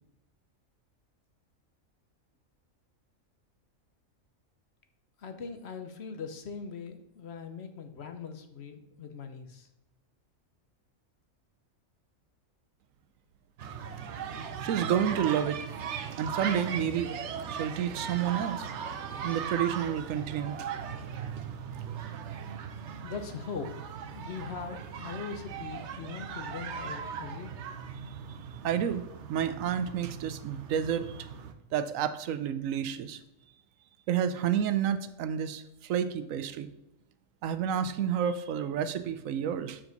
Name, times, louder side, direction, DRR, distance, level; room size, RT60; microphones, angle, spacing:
voice 1, 5.2-9.7 23.0-27.6, left 5 dB, 55° left, 7 dB, 1.0 m, -41 dB
sound 1, 13.6-31.5, right 7 dB, 65° right, 0.9 m, -38 dB
voice 2, 14.6-15.6 16.2-17.1 17.5-18.7 19.2-20.7 28.6-29.0 29.3-31.3 31.7-33.2 34.1-36.7 37.4-39.8, right 9 dB, 90° right, 12 dB, 1.0 m, -30 dB
7.1 x 6.4 x 4.0 m, 0.89 s
omnidirectional pair, 1.4 m